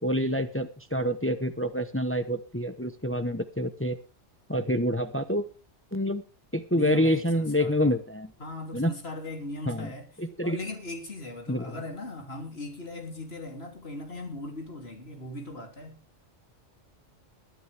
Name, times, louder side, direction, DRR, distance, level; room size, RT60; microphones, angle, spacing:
voice 1, 0.0-4.0 4.5-5.5 5.9-6.2 6.5-8.3 8.7-8.9 9.7-9.9 10.2-10.6 11.5-11.7, equal, 10° left, 0.9 m, -27 dB
voice 2, 6.7-7.9 8.4-10.1 10.4-16.0, left 2 dB, 55° left, 3.4 m, -39 dB
22.0 x 9.3 x 3.5 m
omnidirectional pair, 1.3 m